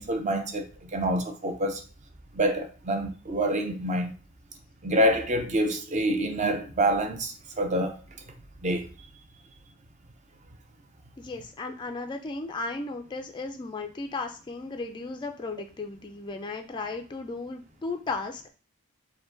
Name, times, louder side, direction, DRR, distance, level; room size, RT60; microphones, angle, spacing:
voice 1, 0.0-1.8 2.3-4.1 4.8-7.9 8.6-8.9, right 1 dB, 30° right, 0.5 m, -27 dB
voice 2, 11.2-18.5, left 3 dB, 20° left, 0.3 m, -35 dB
4.7 x 2.2 x 3.8 m
head